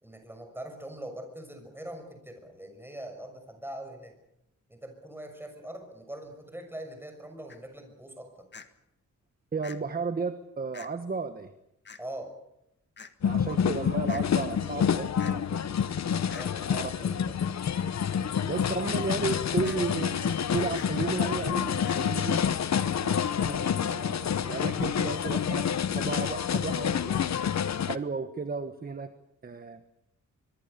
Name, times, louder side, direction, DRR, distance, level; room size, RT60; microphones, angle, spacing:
voice 1, 0.0-4.1 4.7-8.5 12.0-12.3 16.3-17.3, right 1 dB, 5° right, 5 dB, 6.3 m, -42 dB
sound 1, 7.5-7.6 8.5-8.7 9.6-9.8 10.7-10.9 11.8-12.0 13.0-13.1 14.1-14.2 15.2-15.4 16.3-16.5 19.6-19.8 20.7-20.9 21.8-22.0, left 5 dB, 35° left, 1.7 m, -45 dB
voice 2, 9.5-11.5 13.2-15.8 16.8-16.9 18.4-22.4 23.0-25.7 25.9-27.2 27.8-29.1 29.4-29.8, right 4 dB, 30° right, 9 dB, 1.4 m, -34 dB
sound 2, 13.2-28.0, left 8 dB, 60° left, 1.0 m, -28 dB
24.0 x 23.5 x 6.9 m, 0.81 s
wide cardioid pair, 140°, 31 cm